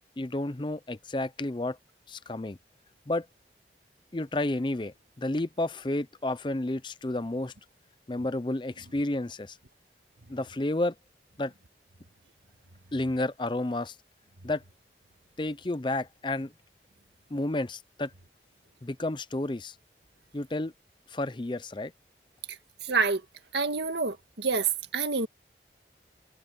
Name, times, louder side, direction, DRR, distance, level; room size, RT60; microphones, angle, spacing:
voice 1, 0.2-1.8 2.1-2.6 3.1-3.3 4.1-7.5 8.1-9.6 10.3-10.9 11.4-11.5 12.9-14.0 14.4-14.6 15.4-16.5 17.3-18.1 18.8-19.7 20.3-20.7 21.1-21.9, left 2 dB, 25° left, 0.6 m, -31 dB
voice 2, 22.5-23.2 23.5-25.3, right 4 dB, 80° right, 1.8 m, -28 dB
head